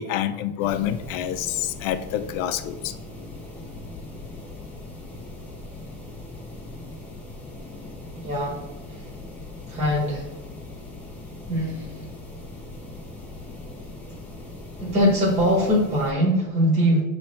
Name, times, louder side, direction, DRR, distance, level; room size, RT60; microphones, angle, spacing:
voice 1, 0.0-2.9, left 11 dB, 55° left, 11 dB, 0.5 m, -27 dB
sound 1, 0.6-16.1, left 2 dB, 5° left, 0.5 m, -40 dB
voice 2, 8.2-8.6 8.9-9.1 9.7-10.3 11.5-12.1 14.8-17.0, equal, 20° right, -4 dB, 1.3 m, -22 dB
6.9 x 3.3 x 4.3 m, 1.0 s
cardioid pair, 175°, 43 cm